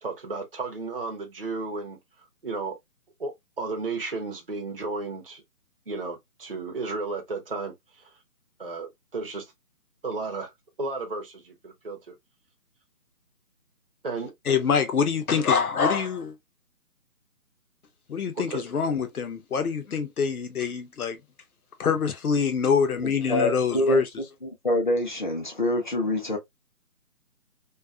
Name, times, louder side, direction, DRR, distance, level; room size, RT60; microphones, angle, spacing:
voice 1, 0.0-2.0 2.4-2.8 3.2-5.4 5.9-8.1 8.6-9.5 10.0-10.5 10.8-12.2 14.0-14.3 15.3-15.4 18.4-18.6, right 3 dB, 40° right, 0.4 m, -33 dB
voice 2, 14.5-16.3 18.1-21.2 21.8-24.0, left 6 dB, 70° left, 0.8 m, -25 dB
voice 3, 23.0-24.0 24.4-26.4, left 1 dB, 35° left, 0.6 m, -25 dB
2.4 x 2.3 x 2.3 m
figure-of-eight pair, 165°, 46 cm